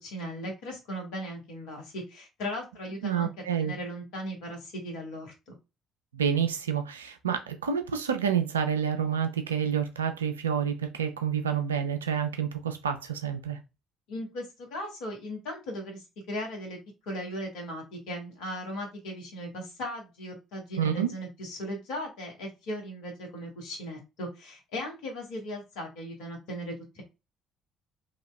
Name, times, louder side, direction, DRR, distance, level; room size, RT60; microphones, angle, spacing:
voice 1, 0.0-3.3 3.6-5.5 14.1-16.8 17.1-27.0, equal, 70° left, 1.2 m, -37 dB
voice 2, 3.0-3.7 6.1-13.6 20.8-21.1, right 8 dB, 90° right, 0.4 m, -28 dB
2.9 x 2.7 x 2.2 m
hypercardioid pair, 50°, 0 cm